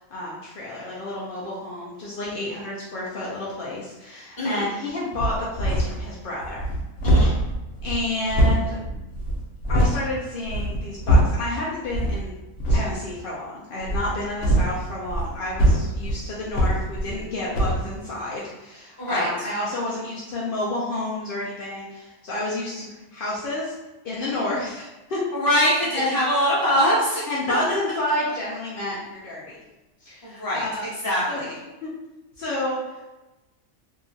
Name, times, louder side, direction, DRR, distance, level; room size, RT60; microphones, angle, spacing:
voice 1, 0.0-6.7 7.2-7.3 7.8-8.8 9.7-12.3 12.7-23.8 24.0-25.2 25.9-26.1 27.3-29.6 30.0-30.8 31.3-31.5 31.8-31.9 32.4-33.0, left 1 dB, 80° left, -6 dB, 0.4 m, -30 dB
sound 1, 5.1-6.1 6.4-10.0 10.4-11.5 11.9-12.2 12.6-12.9 13.8-17.3 17.5-17.9, right 1 dB, 65° left, 0.9 m, -22 dB
voice 2, 19.0-19.3 25.3-27.2 30.2-30.6 31.0-31.5, equal, 20° left, -8 dB, 0.7 m, -22 dB
2.7 x 2.4 x 2.5 m, 1.1 s
omnidirectional pair, 1.5 m